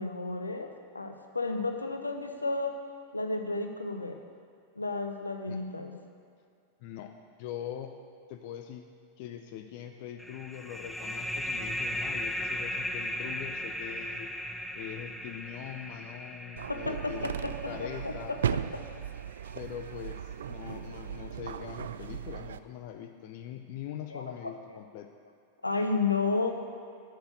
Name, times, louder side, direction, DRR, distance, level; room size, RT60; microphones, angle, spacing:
voice 1, 0.0-2.8 3.1-4.2 4.8-6.0 16.7-17.5 17.8-18.8 24.1-24.8 25.6-26.5, left 3 dB, 80° left, 5 dB, 0.8 m, -32 dB
voice 2, 6.8-7.9 8.3-8.9 9.2-14.3 14.7-18.4 19.6-25.1, left 10 dB, 50° left, 6 dB, 0.6 m, -42 dB
sound 1, 10.2-19.5, left 1 dB, ahead, 0.6 m, -37 dB
sound 2, 16.6-22.6, right 9 dB, 65° right, 0.3 m, -36 dB
7.9 x 6.5 x 8.1 m, 2.4 s
figure-of-eight pair, 90°, 0 cm